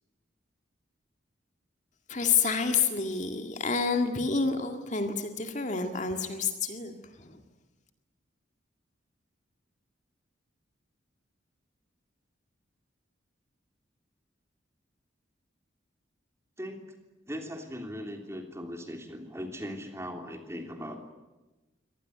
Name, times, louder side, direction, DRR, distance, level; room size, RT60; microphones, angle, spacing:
voice 1, 2.1-7.3, left 5 dB, 40° left, 6 dB, 2.0 m, -29 dB
voice 2, 17.3-21.0, equal, 15° right, 5 dB, 3.3 m, -39 dB
25.0 x 19.0 x 9.3 m, 1.1 s
head